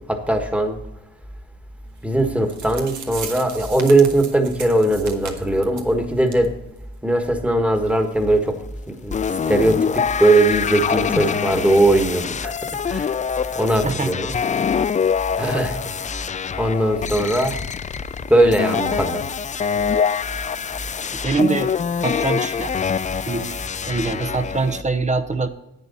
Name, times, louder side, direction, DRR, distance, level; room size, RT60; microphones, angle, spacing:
voice 1, 0.1-0.8 2.0-6.5 7.0-8.5 9.0-9.2 9.5-9.9 10.2-12.5 12.9-13.1 13.5-14.3 15.4-15.8 16.6-17.5 18.3-19.2, right 1 dB, 5° right, 6 dB, 1.6 m, -19 dB
sound 1, 2.2-2.3 2.5-5.9 6.3-6.5 6.8-6.9 7.3-7.4, right 6 dB, 75° right, 1.6 m, -36 dB
sound 2, 9.1-24.8, left 6 dB, 25° left, 0.4 m, -25 dB
voice 2, 21.1-21.7 22.0-22.7 23.3-23.6 23.9-25.5, right 3 dB, 25° right, 11 dB, 0.9 m, -23 dB
10.5 x 8.6 x 4.2 m, 0.91 s
cardioid pair, 90°, 30 cm